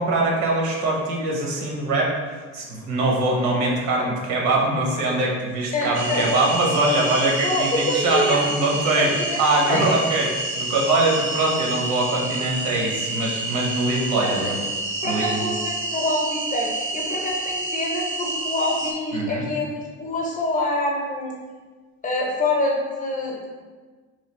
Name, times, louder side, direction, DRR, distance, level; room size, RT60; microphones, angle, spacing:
voice 1, 0.0-9.1 9.4-14.6 15.0-15.5 19.1-19.5, right 2 dB, 75° right, -1 dB, 0.9 m, -23 dB
voice 2, 5.7-6.2 7.4-8.7 9.0-9.4 9.6-9.9 14.4-14.5 15.0-21.3 22.0-23.5, left 2 dB, 25° left, -2 dB, 0.6 m, -26 dB
sound 1, 5.9-18.9, right 2 dB, 45° right, 0.5 m, -29 dB
3.2 x 2.3 x 4.2 m, 1.4 s
cardioid pair, 160°, 29 cm